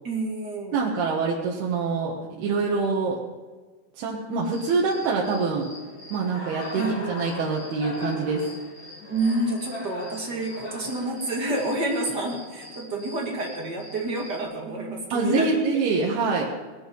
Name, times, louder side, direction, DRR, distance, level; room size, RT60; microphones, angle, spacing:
voice 1, 0.0-0.8 6.8-7.2 9.1-15.6, right 2 dB, 30° right, 0 dB, 2.3 m, -28 dB
voice 2, 0.7-3.2 4.0-5.7 6.1-8.5 15.1-16.5, right 4 dB, 90° right, -3 dB, 3.6 m, -25 dB
Cricket, 4.4-14.4, left 1 dB, 55° left, 6.5 m, -41 dB
19.5 x 11.5 x 5.5 m, 1.3 s
omnidirectional pair, 4.4 m